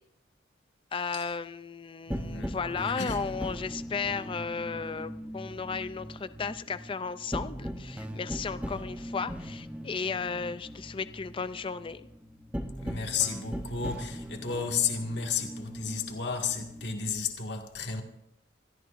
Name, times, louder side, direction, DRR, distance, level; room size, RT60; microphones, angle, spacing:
voice 1, 0.9-12.0, left 5 dB, 25° left, 0.4 m, -34 dB
voice 2, 2.1-2.6 2.9-3.3 12.8-18.0, left 6 dB, 60° left, 2.0 m, -33 dB
sound 1, 2.1-17.3, equal, 5° right, 0.9 m, -39 dB
27.0 x 14.0 x 2.6 m
head